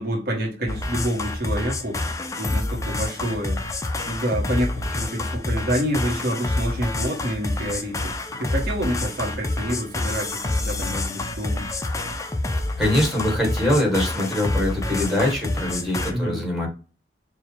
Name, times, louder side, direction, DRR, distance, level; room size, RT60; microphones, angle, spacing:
voice 1, 0.0-3.6 4.1-8.1 8.4-11.7 16.1-16.4, equal, 60° right, 1.2 m, -28 dB
sound 1, 0.7-16.1, left 2 dB, 20° left, 0.5 m, -28 dB
voice 2, 12.8-16.7, left 1 dB, ahead, 1.5 m, -23 dB
4.7 x 2.4 x 3.3 m
head